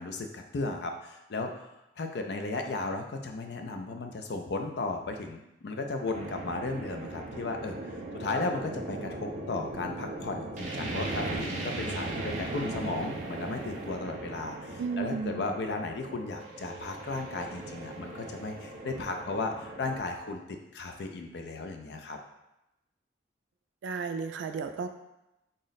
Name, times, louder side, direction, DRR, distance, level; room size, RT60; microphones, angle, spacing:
voice 1, 0.0-1.7 2.0-22.2, left 3 dB, 65° left, 4 dB, 0.4 m, -35 dB
sound 1, 6.1-20.0, right 2 dB, 45° right, 0.5 m, -38 dB
voice 2, 14.8-15.5 23.8-24.9, right 5 dB, 90° right, 7 dB, 0.3 m, -33 dB
3.7 x 2.1 x 3.9 m, 0.90 s
head